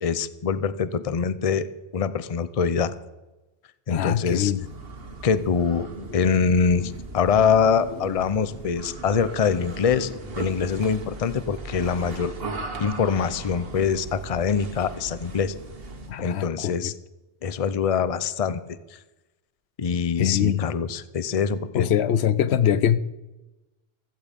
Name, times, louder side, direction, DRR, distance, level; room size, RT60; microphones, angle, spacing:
voice 1, 0.0-2.9 3.9-4.5 5.2-5.9 6.1-10.1 10.4-12.3 12.8-15.5 16.2-16.9 17.4-18.6 18.9-19.0 19.8-21.9, left 6 dB, 40° left, 14 dB, 0.7 m, -24 dB
voice 2, 3.9-4.6 16.1-16.9 20.2-20.7 21.7-23.0, left 9 dB, 80° left, 15 dB, 0.9 m, -23 dB
sound 1, 4.5-16.2, right 3 dB, 65° right, 1.7 m, -38 dB
15.5 x 14.0 x 5.2 m, 1.1 s
omnidirectional pair, 1.1 m